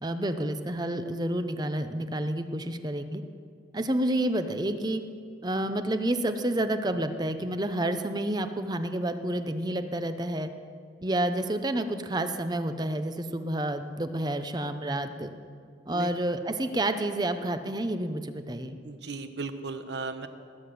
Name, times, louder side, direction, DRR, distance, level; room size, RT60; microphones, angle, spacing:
voice 1, 0.0-3.2 3.7-5.0 5.4-10.5 11.0-15.3 15.9-18.8, right 1 dB, 25° right, 9 dB, 0.7 m, -29 dB
voice 2, 18.8-20.3, right 3 dB, 75° right, 9 dB, 1.0 m, -36 dB
19.5 x 7.7 x 7.8 m, 2.2 s
head